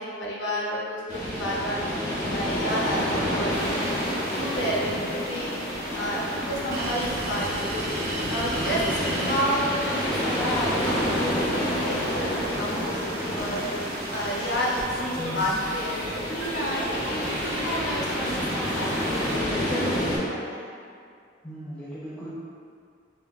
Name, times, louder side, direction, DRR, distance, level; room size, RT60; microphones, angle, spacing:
voice 1, 0.0-1.8 2.3-7.9 8.3-12.3 12.6-13.7 14.1-18.9 19.2-20.8, equal, 65° left, -4 dB, 0.6 m, -31 dB
sound 1, 1.1-20.2, equal, 25° left, 0.8 m, -29 dB
sound 2, 3.5-19.4, right 1 dB, 55° right, 0.4 m, -37 dB
voice 2, 15.2-15.6 21.4-22.3, equal, 5° left, -12 dB, 0.4 m, -37 dB
4.0 x 2.1 x 2.3 m, 2.3 s
head